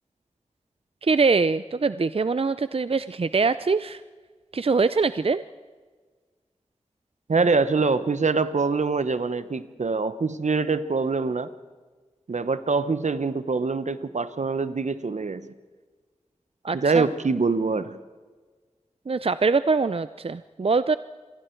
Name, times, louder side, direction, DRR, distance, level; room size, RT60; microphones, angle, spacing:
voice 1, 1.0-4.0 4.5-5.4 16.6-17.0 19.1-21.0, right 4 dB, 50° right, 14 dB, 0.5 m, -23 dB
voice 2, 7.3-11.5 12.3-15.5 16.7-18.0, right 4 dB, 75° right, 13 dB, 1.0 m, -24 dB
27.5 x 22.5 x 4.6 m, 1.4 s
wide cardioid pair, 45°, 12 cm